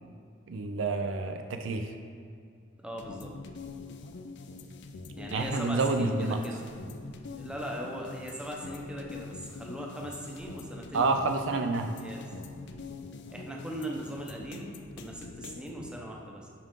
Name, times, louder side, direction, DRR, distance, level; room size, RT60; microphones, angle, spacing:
voice 1, 0.5-1.9 5.3-6.4 10.9-11.9, right 3 dB, 65° right, 6 dB, 0.5 m, -28 dB
voice 2, 2.8-3.3 5.2-6.7 7.4-11.2 12.0-12.3 13.3-16.5, right 1 dB, 5° right, -1 dB, 0.7 m, -39 dB
sound 1, 3.0-15.9, left 3 dB, 60° left, 0.5 m, -44 dB
10.5 x 3.8 x 3.6 m, 2.3 s
head